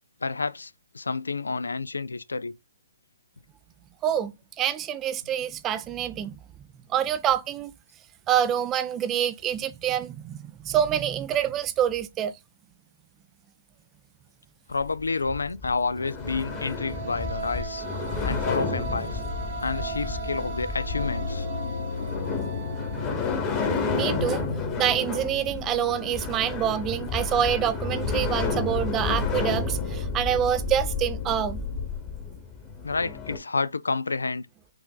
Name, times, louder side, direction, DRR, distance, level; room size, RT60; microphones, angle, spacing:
voice 1, 0.2-2.5 14.7-17.8 18.2-19.2 19.6-21.5 32.8-34.5, left 4 dB, 85° left, 0.3 m, -29 dB
voice 2, 4.6-6.4 6.9-7.7 8.3-12.3 23.9-24.4 24.8-31.6, right 10 dB, 20° right, 0.4 m, -26 dB
sound 1, 14.7-33.4, left 4 dB, 20° left, 1.1 m, -31 dB
sound 2, 16.0-24.6, right 4 dB, 40° right, 1.1 m, -38 dB
sound 3, 20.9-31.9, left 4 dB, 50° left, 0.9 m, -37 dB
4.7 x 2.5 x 3.8 m
hypercardioid pair, 135°, 0 cm